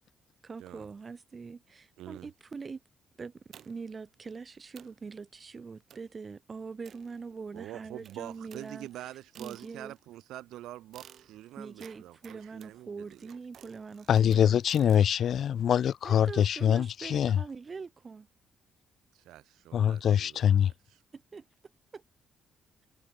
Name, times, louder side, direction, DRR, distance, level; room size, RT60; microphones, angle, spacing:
voice 1, 0.4-2.8 3.2-9.1 9.4-9.9 11.6-14.6 16.0-18.3 21.1-21.4 21.9-22.0, right 5 dB, 35° right, 0.5 m, -43 dB
voice 2, 2.0-2.3 7.5-13.3 19.1-20.5 20.9-21.0, right 14 dB, 85° right, 1.9 m, -45 dB
sound 1, 3.5-4.0 4.4-4.5 4.8-5.1 5.9-6.2 6.8-7.6 8.0-10.1 10.9-15.1, right 9 dB, 65° right, 1.5 m, -55 dB
voice 3, 14.1-17.4 19.7-20.7, left 9 dB, 65° left, 0.3 m, -24 dB
cardioid pair, 90°, 0 cm